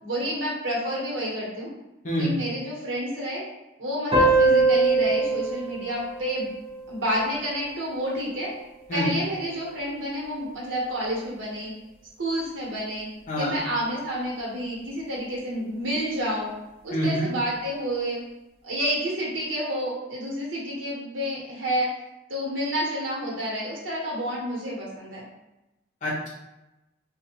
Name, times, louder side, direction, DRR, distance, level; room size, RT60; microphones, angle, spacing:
voice 1, 0.0-1.7 2.2-3.4 3.8-6.5 6.9-8.5 8.9-11.7 12.2-13.0 13.4-16.5 16.8-18.2 18.6-21.9 22.3-25.2, equal, 80° right, -4 dB, 1.0 m, -29 dB
sound 1, 4.1-7.3, right 3 dB, 30° right, 0.7 m, -22 dB
voice 2, 16.9-17.3 26.0-26.3, equal, 40° left, -6 dB, 0.9 m, -26 dB
2.6 x 2.3 x 2.8 m, 0.97 s
head